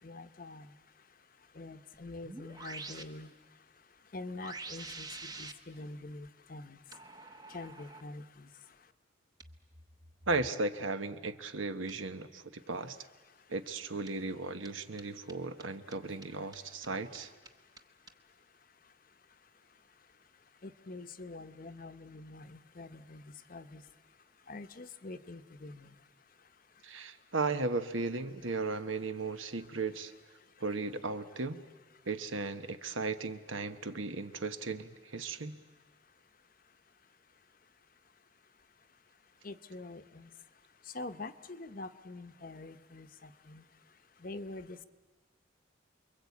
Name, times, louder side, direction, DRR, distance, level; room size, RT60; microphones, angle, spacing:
voice 1, 0.0-0.8 1.5-3.3 4.1-6.8 7.5-8.8 16.3-16.8 20.6-23.8 24.5-25.9 39.4-40.3 40.8-43.6 44.2-44.8, left 2 dB, 45° left, 10 dB, 0.9 m, -46 dB
sound 1, 1.9-3.0 4.4-5.5 6.9-8.0 9.4-10.5 11.9-12.0 14.1-14.2 14.6-14.7 15.0-15.1 15.3-15.4 15.6-15.7 15.9-16.0 16.2-16.3 16.5-16.6 16.8-16.9 17.1-17.2 17.5-17.6 17.8-17.9 18.1-18.2, right 3 dB, 20° right, 0.9 m, -46 dB
voice 2, 10.3-13.0 13.5-17.3 26.8-30.1 30.6-31.6 32.1-35.6, right 3 dB, 80° right, 9 dB, 1.2 m, -36 dB
29.5 x 22.5 x 8.5 m, 1.4 s
head